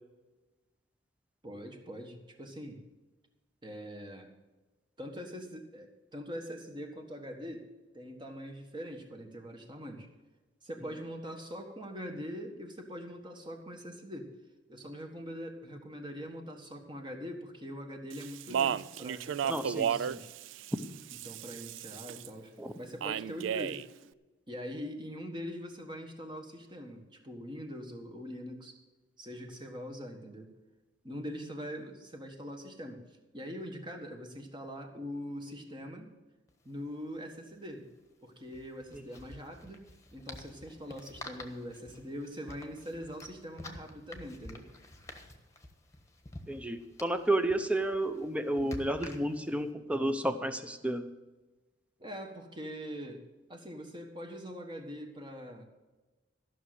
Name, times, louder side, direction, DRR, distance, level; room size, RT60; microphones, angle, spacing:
voice 1, 1.4-2.8 3.6-4.3 5.0-7.7 7.9-10.1 10.6-14.3 14.7-20.3 21.2-23.8 24.5-28.8 29.2-30.5 31.0-33.0 33.3-36.1 36.6-37.9 38.2-39.9 40.1-44.7 52.0-55.7, equal, 25° right, 3 dB, 1.5 m, -43 dB
Speech, 18.1-22.3 23.0-23.9, right 8 dB, 70° right, 0.3 m, -34 dB
voice 2, 19.5-19.9 22.6-22.7 38.9-39.0 46.5-51.1, right 1 dB, 5° right, 9 dB, 0.7 m, -31 dB
sound 1, 36.5-36.6 36.8-37.0 38.4-49.6, left 2 dB, 15° left, 1.3 m, -49 dB
14.0 x 6.3 x 7.7 m, 1.2 s
head